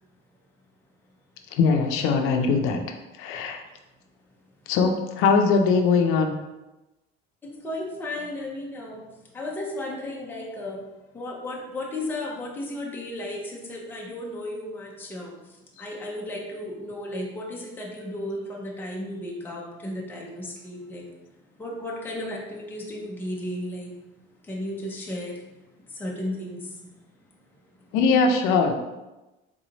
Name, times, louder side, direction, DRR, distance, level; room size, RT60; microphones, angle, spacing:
voice 1, 1.5-2.8 3.2-3.6 4.7-6.3 27.9-28.7, left 4 dB, 75° left, 4 dB, 0.6 m, -21 dB
voice 2, 7.4-10.9 11.1-21.1 21.6-23.9 24.4-26.9 27.7-28.0, left 1 dB, 10° left, -3 dB, 0.6 m, -34 dB
3.8 x 3.2 x 3.9 m, 1.0 s
cardioid pair, 175°, 21 cm